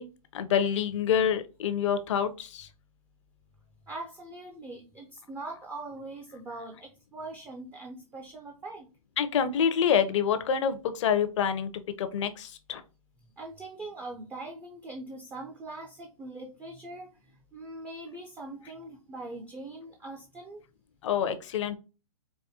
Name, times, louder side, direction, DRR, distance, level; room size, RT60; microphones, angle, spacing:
voice 1, 0.0-2.7 9.2-11.7 12.0-12.8 21.0-21.8, left 8 dB, 55° left, 11 dB, 0.6 m, -27 dB
voice 2, 3.9-8.9 13.2-20.6, right 2 dB, 10° right, 2 dB, 0.4 m, -42 dB
4.7 x 2.1 x 2.8 m, 0.32 s
hypercardioid pair, 125°, 19 cm